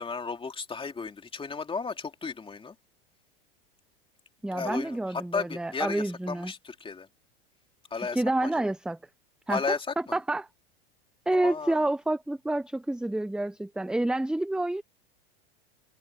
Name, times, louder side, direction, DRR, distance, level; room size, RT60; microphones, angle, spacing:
voice 1, 0.0-2.7 4.5-7.1 7.9-8.7 9.5-10.2 11.3-11.9, left 5 dB, 15° left, 2.6 m, -34 dB
voice 2, 4.4-6.5 8.0-9.0 9.5-9.6 10.1-10.5 11.3-14.8, right 1 dB, 5° right, 0.9 m, -28 dB
hypercardioid pair, 100°, 32 cm